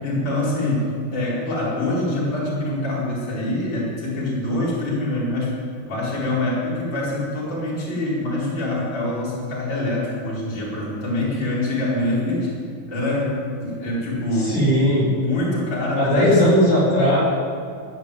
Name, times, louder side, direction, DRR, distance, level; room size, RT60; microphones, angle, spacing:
voice 1, 0.0-5.5 5.9-12.5 12.9-14.6 15.2-16.3, left 1 dB, 30° left, -8 dB, 5.3 m, -25 dB
voice 2, 14.3-15.1 16.0-17.2, equal, 55° left, -6 dB, 6.3 m, -17 dB
15.5 x 9.7 x 9.3 m, 2.3 s
omnidirectional pair, 4.2 m